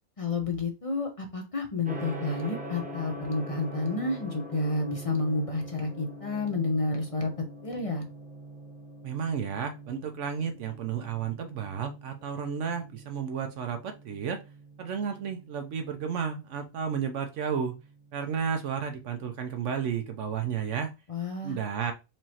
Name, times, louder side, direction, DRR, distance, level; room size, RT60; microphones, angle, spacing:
voice 1, 0.2-7.3 7.6-8.1 21.1-21.6, left 3 dB, 35° left, 3 dB, 0.6 m, -30 dB
Gong, 1.8-20.8, right 1 dB, 10° right, 0.6 m, -44 dB
voice 2, 9.0-14.4 14.8-17.7 18.1-20.9 21.4-21.9, right 7 dB, 65° right, 6 dB, 0.9 m, -32 dB
4.6 x 3.1 x 2.8 m, 0.27 s
omnidirectional pair, 1.4 m